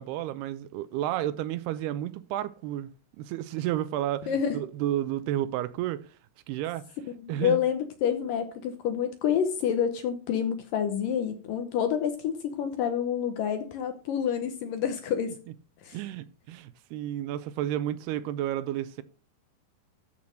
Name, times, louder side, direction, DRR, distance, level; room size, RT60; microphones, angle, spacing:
voice 1, 0.0-6.0 6.5-6.8 7.3-7.6 15.9-19.0, right 12 dB, 80° right, 2.6 m, -31 dB
voice 2, 4.3-4.6 7.2-15.4 15.8-16.0, left 8 dB, 70° left, 2.1 m, -28 dB
13.0 x 5.6 x 6.3 m
omnidirectional pair, 4.8 m